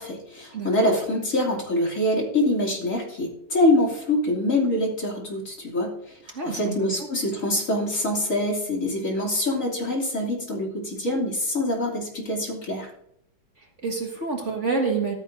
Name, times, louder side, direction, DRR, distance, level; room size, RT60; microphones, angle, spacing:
voice 1, 0.0-12.9, left 1 dB, 45° left, -1 dB, 3.2 m, -25 dB
voice 2, 0.5-0.9 6.3-7.1 13.6-15.1, right 4 dB, 40° right, 1 dB, 2.0 m, -28 dB
14.5 x 13.5 x 2.6 m, 0.72 s
omnidirectional pair, 2.0 m